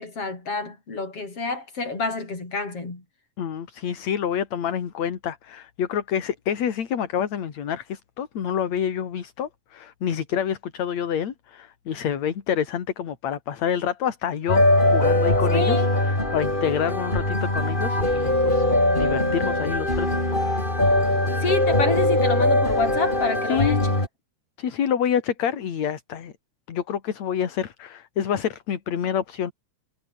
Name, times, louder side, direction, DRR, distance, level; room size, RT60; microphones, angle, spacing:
voice 1, 0.0-3.0 15.5-15.9 21.4-23.8, left 3 dB, 50° left, 7.3 m, -28 dB
voice 2, 3.4-14.6 14.9-15.8 16.1-18.6 18.9-20.7 23.5-23.9 24.6-26.3 26.7-29.5, left 8 dB, 70° left, 3.5 m, -27 dB
sound 1, 14.5-24.1, left 1 dB, 15° left, 5.9 m, -21 dB
omnidirectional pair, 3.3 m